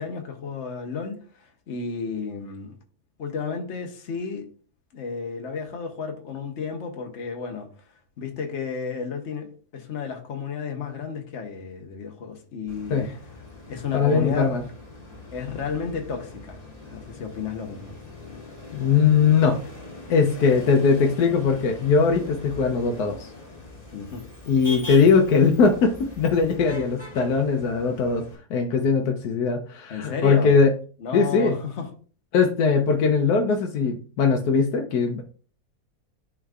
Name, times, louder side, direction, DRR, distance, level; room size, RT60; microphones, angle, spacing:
voice 1, 0.0-2.7 3.2-4.5 4.9-7.7 8.2-13.1 13.7-14.7 15.3-16.6 16.9-18.0 23.9-24.2 29.9-30.6 31.0-31.9, left 5 dB, 50° left, 1.3 m, -32 dB
Motor vehicle (road), 12.7-28.4, left 2 dB, 25° left, 2.1 m, -41 dB
voice 2, 13.9-14.6 18.7-19.6 20.1-23.3 24.5-28.2 28.5-30.7 31.1-31.6 32.3-35.2, left 5 dB, 80° left, 1.3 m, -20 dB
11.0 x 3.7 x 2.4 m
omnidirectional pair, 1.7 m